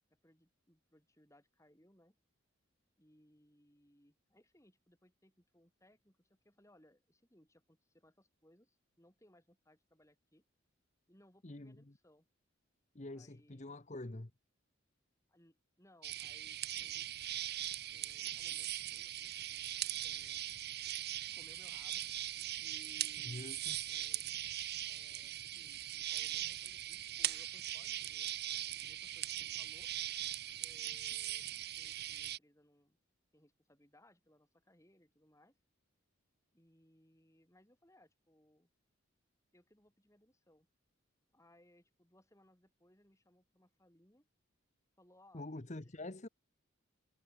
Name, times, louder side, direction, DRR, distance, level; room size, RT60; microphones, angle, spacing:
voice 1, 0.1-2.1 3.0-10.5 11.1-12.3 13.1-13.8 15.3-17.1 17.9-19.7 20.0-20.4 21.1-22.1 22.6-24.2 24.8-29.9 30.6-33.0 33.3-35.6 36.5-38.7 39.5-40.7 41.3-44.3 45.0-45.5 45.8-45.9, left 1 dB, 15° left, 7.3 m, -67 dB
voice 2, 11.4-11.9 12.9-14.3 23.2-23.8 26.4-26.5 45.3-46.3, left 2 dB, 35° left, 1.0 m, -46 dB
sound 1, 16.0-32.4, right 13 dB, 50° right, 1.1 m, -40 dB
head